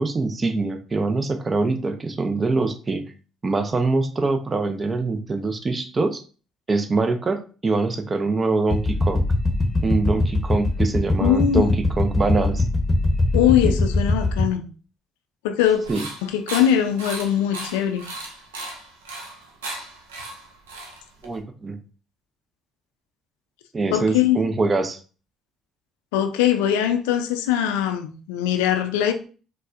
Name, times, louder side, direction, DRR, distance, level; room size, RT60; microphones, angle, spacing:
voice 1, 0.0-3.0 3.4-6.2 6.7-9.2 9.8-12.6 15.9-16.1 21.2-21.8 23.7-25.0, right 3 dB, 30° right, 0.5 m, -24 dB
sound 1, 8.7-14.4, left 2 dB, 20° left, 0.9 m, -22 dB
voice 2, 11.2-11.8 13.3-14.6 15.4-15.9 16.2-18.1 23.9-24.4 26.1-29.1, left 10 dB, 80° left, 0.4 m, -21 dB
sound 2, 15.6-21.4, right 2 dB, 85° right, 0.6 m, -36 dB
4.1 x 2.1 x 2.4 m
hypercardioid pair, 50°, 0 cm